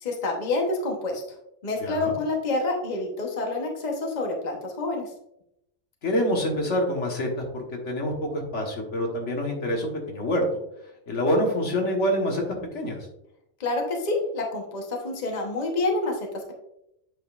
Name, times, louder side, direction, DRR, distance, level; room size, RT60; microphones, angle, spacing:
voice 1, 0.0-1.2 1.6-5.0 13.6-16.5, left 2 dB, 35° left, 1 dB, 1.1 m, -28 dB
voice 2, 1.8-2.2 6.0-10.4 11.1-12.4 12.7-13.0, equal, 75° left, 1 dB, 1.6 m, -26 dB
8.6 x 5.0 x 2.4 m, 0.79 s
omnidirectional pair, 1.3 m